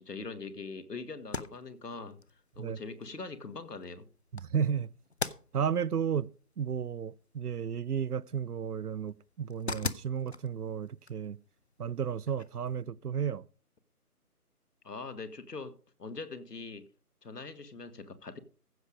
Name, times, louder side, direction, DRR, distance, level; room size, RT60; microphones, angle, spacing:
voice 1, 0.0-2.2 2.6-4.1 14.8-16.9 17.2-18.4, left 4 dB, 85° left, 2.0 m, -42 dB
sound 1, 1.2-12.8, left 3 dB, 45° left, 0.7 m, -44 dB
voice 2, 4.4-4.9 5.5-6.3 6.6-11.4 11.8-13.4, right 7 dB, 75° right, 0.7 m, -33 dB
15.5 x 6.7 x 5.1 m
figure-of-eight pair, 170°, 47 cm